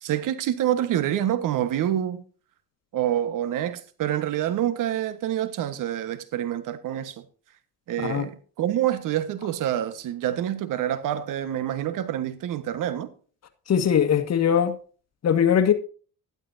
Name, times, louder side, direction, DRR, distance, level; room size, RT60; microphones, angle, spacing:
voice 1, 0.0-2.2 2.9-7.2 7.9-13.1, right 11 dB, 70° right, 1.4 m, -27 dB
voice 2, 13.7-14.7 15.2-15.7, left 8 dB, 50° left, 1.8 m, -20 dB
12.0 x 12.0 x 2.7 m
supercardioid pair, 85°, 34 cm